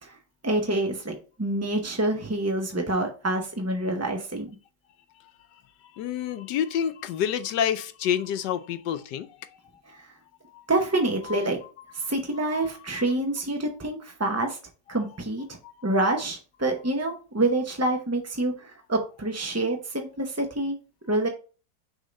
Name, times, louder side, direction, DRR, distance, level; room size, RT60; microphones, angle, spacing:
voice 1, 0.4-4.5 9.9-10.1 10.7-11.6 11.9-14.6 14.9-15.4 15.8-20.8 21.1-21.3, right 2 dB, 20° right, 0.4 m, -27 dB
voice 2, 5.2-9.5 9.9-10.0 10.5-10.7 11.2-11.4 12.0-12.1 12.5-12.6 15.6-16.2, left 9 dB, 85° left, 1.3 m, -30 dB
6.4 x 3.7 x 5.2 m
omnidirectional pair, 1.8 m